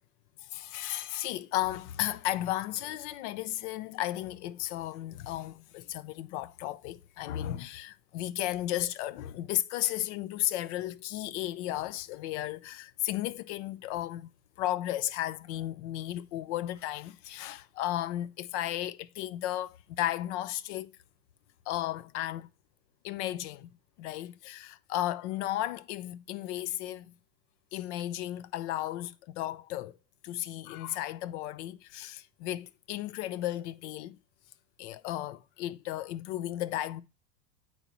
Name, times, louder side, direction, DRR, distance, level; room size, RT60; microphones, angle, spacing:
voice 1, 0.4-14.3 14.6-20.9 21.7-22.5 23.0-27.1 27.7-30.0 30.2-34.2 34.8-37.0, left 14 dB, 45° left, 0.5 m, -34 dB
8.8 x 4.2 x 2.8 m
hypercardioid pair, 95°, 50 cm